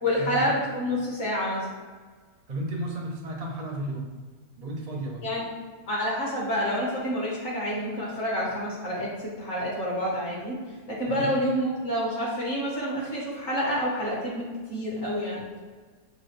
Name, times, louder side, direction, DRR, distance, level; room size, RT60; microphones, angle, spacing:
voice 1, 0.0-1.7 5.2-5.5 5.9-10.6 10.9-15.5, equal, 45° left, -5 dB, 1.4 m, -28 dB
voice 2, 2.5-4.1 4.6-5.2 11.1-11.3, right 1 dB, 50° right, -1 dB, 0.5 m, -33 dB
6.1 x 2.5 x 3.2 m, 1.4 s
omnidirectional pair, 1.8 m